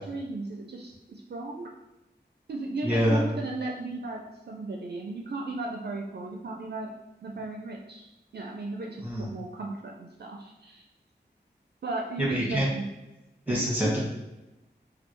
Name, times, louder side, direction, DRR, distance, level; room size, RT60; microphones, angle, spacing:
voice 1, 0.1-1.7 2.5-6.9 7.2-10.8 11.8-12.9 13.5-13.9, right 2 dB, 65° right, 1 dB, 0.4 m, -35 dB
voice 2, 2.8-3.2 9.0-9.3 12.3-12.7 13.5-14.0, equal, 10° right, -4 dB, 1.3 m, -25 dB
3.3 x 2.3 x 3.0 m, 0.99 s
wide cardioid pair, 45°, 18 cm